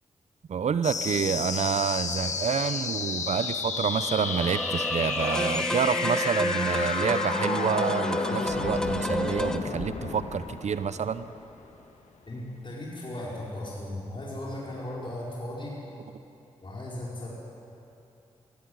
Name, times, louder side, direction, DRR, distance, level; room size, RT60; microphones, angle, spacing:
voice 1, 0.5-11.3, right 7 dB, 65° right, 13 dB, 0.7 m, -28 dB
sound 1, 0.8-11.8, left 4 dB, 70° left, 1.7 m, -32 dB
sound 2, 4.0-9.6, equal, 5° left, 1.5 m, -30 dB
voice 2, 12.3-15.8 16.6-17.3, left 1 dB, 40° left, -5 dB, 4.8 m, -36 dB
17.5 x 15.5 x 9.7 m, 2.8 s
supercardioid pair, 40°, 13 cm